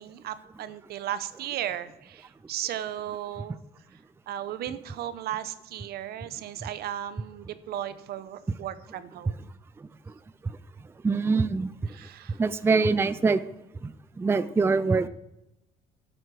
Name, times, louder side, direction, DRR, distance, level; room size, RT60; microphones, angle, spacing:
voice 1, 0.0-3.6 4.3-9.4 11.9-12.4, right 11 dB, 70° right, 14 dB, 0.8 m, -35 dB
voice 2, 11.0-11.7 12.4-13.4 14.2-15.1, right 4 dB, 15° right, 14 dB, 0.4 m, -23 dB
10.5 x 8.0 x 6.2 m, 0.90 s
cardioid pair, 110°, 17 cm